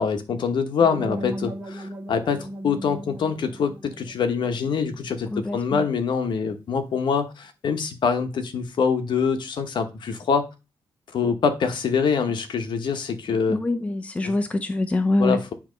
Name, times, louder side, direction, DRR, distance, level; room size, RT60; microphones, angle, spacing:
voice 1, 0.0-10.5 11.1-13.6 14.2-14.3 15.2-15.5, left 6 dB, 60° left, 1.1 m, -25 dB
sound 1, 0.8-5.7, equal, 15° right, 1.5 m, -37 dB
voice 2, 5.3-5.8 13.5-15.4, left 2 dB, 15° left, 0.6 m, -24 dB
8.8 x 3.0 x 5.1 m
wide cardioid pair, 145°, 9 cm